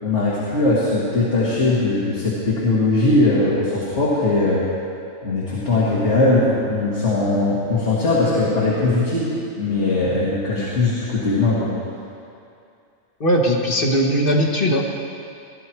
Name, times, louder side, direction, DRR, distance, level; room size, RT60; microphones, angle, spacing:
voice 1, 0.0-4.6 5.2-9.3 9.6-11.7, left 2 dB, 60° left, -8 dB, 2.3 m, -20 dB
voice 2, 13.2-14.8, equal, 45° left, 0 dB, 1.5 m, -19 dB
17.0 x 11.5 x 4.6 m, 2.5 s
omnidirectional pair, 1.4 m